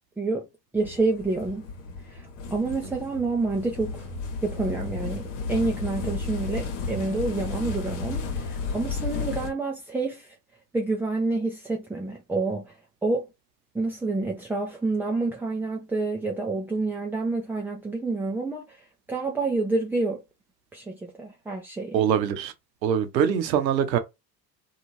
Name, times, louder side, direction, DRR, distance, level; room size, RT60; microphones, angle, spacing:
voice 1, 0.2-0.5 0.7-1.6 2.1-4.1 4.4-5.2 5.5-10.3 10.7-12.7 13.0-13.3 13.7-18.6 19.1-20.2 20.7-22.0, right 3 dB, 5° right, 0.3 m, -28 dB
sound 1, 0.8-9.5, left 4 dB, 70° left, 1.0 m, -33 dB
voice 2, 21.9-22.5 22.8-24.0, right 8 dB, 85° right, 0.7 m, -23 dB
2.7 x 2.4 x 3.0 m
hypercardioid pair, 70°, 49 cm